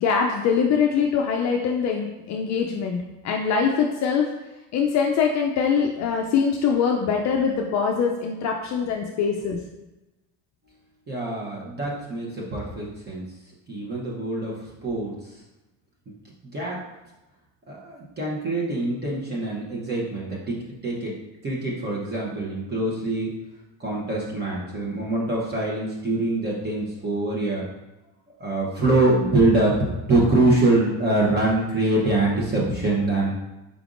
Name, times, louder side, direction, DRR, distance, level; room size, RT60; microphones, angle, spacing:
voice 1, 0.0-3.0 3.2-4.3 4.7-9.6, left 6 dB, 45° left, 1 dB, 0.4 m, -23 dB
voice 2, 11.1-13.2 13.7-14.5 14.8-15.1 16.1-16.2 16.5-16.8 17.7-21.1 21.4-23.4 23.8-27.7 28.4-33.3, right 2 dB, 25° right, -4 dB, 0.8 m, -24 dB
5.0 x 3.4 x 2.5 m, 1.0 s
cardioid pair, 135°, 39 cm